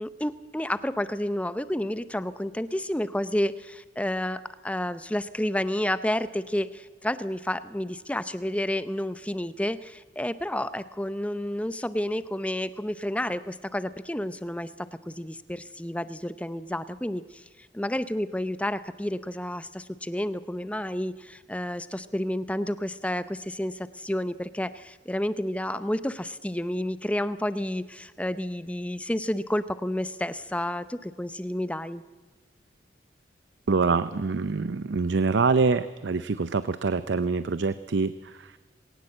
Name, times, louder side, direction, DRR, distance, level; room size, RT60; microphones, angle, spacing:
voice 1, 0.0-17.4 17.7-32.0, left 1 dB, 5° left, 14 dB, 0.6 m, -30 dB
voice 2, 33.7-38.6, right 4 dB, 75° right, 13 dB, 0.6 m, -25 dB
20.5 x 18.0 x 7.8 m, 1.4 s
head